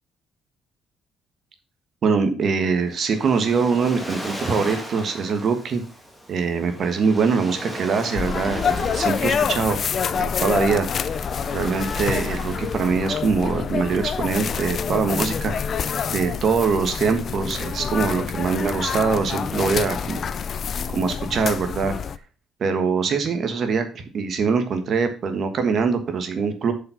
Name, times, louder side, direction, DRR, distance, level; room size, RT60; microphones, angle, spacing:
voice 1, 2.0-5.8 6.3-9.8 10.2-10.9 11.5-15.5 16.1-20.2 20.9-21.9 22.6-26.7, right 5 dB, 40° right, 8 dB, 1.5 m, -23 dB
Waves surf, 2.6-15.0, equal, ahead, 1.7 m, -38 dB
sound 1, 8.2-22.2, left 7 dB, 40° left, 0.4 m, -27 dB
7.4 x 5.6 x 5.8 m, 0.37 s
cardioid pair, 160°, 0 cm